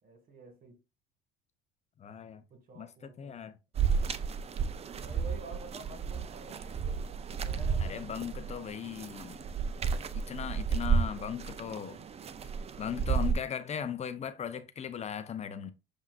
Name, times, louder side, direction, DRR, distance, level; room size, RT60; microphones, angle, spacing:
voice 1, 0.0-0.8 2.5-3.5 5.0-7.1 7.4-8.1 8.6-9.3, right 3 dB, 50° right, 1.9 m, -50 dB
voice 2, 2.0-2.4 2.7-2.9 3.2-3.5 7.8-9.4 10.1-12.0 12.8-15.7, left 8 dB, 35° left, 0.5 m, -38 dB
sound 1, 3.8-13.3, right 6 dB, 30° right, 0.5 m, -32 dB
7.2 x 2.7 x 2.5 m
hypercardioid pair, 75°, 20 cm